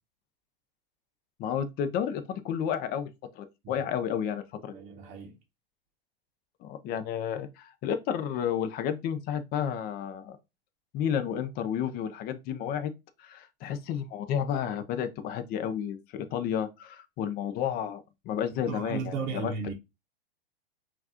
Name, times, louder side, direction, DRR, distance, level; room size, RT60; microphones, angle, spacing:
voice 1, 1.4-3.1 3.4-4.7 6.6-10.4 10.9-12.9 13.2-19.5, left 8 dB, 30° left, 0.6 m, -31 dB
voice 2, 4.7-5.3 18.7-19.7, right 5 dB, 30° right, 0.9 m, -35 dB
5.7 x 2.5 x 2.8 m
hypercardioid pair, 125°, 29 cm